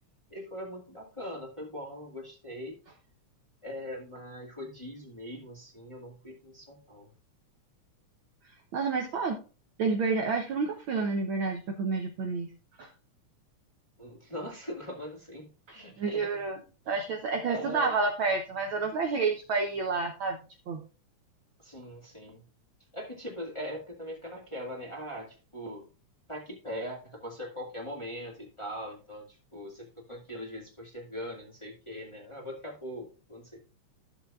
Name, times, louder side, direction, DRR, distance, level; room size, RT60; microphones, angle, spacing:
voice 1, 0.3-2.8 3.6-7.1 14.0-16.4 16.9-17.1 17.4-17.9 21.6-22.4 22.9-25.9 26.3-33.6, equal, 15° left, -2 dB, 1.4 m, -41 dB
voice 2, 8.7-9.4 9.8-12.5 12.8-12.9 16.0-16.6 16.9-20.4 20.7-20.8, right 4 dB, 80° right, 3 dB, 1.1 m, -29 dB
13.0 x 7.1 x 2.4 m, 0.35 s
omnidirectional pair, 3.5 m